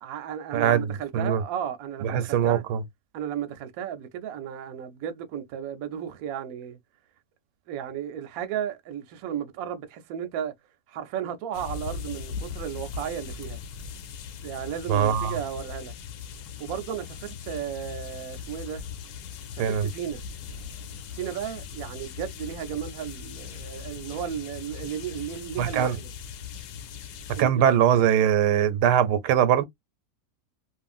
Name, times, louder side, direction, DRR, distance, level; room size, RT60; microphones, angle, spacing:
voice 1, 0.0-2.6 3.1-6.8 7.7-10.5 10.9-13.6 14.4-15.9 16.6-18.8 19.5-20.2 21.1-26.1 27.3-27.7, right 9 dB, 70° right, 1.0 m, -34 dB
voice 2, 0.5-1.4 2.0-2.8 14.9-15.4 19.6-19.9 25.6-26.0 27.4-29.6, right 9 dB, 90° right, 1.2 m, -22 dB
sound 1, 11.5-27.4, left 6 dB, 80° left, 1.2 m, -39 dB
2.9 x 2.5 x 2.4 m
omnidirectional pair, 1.7 m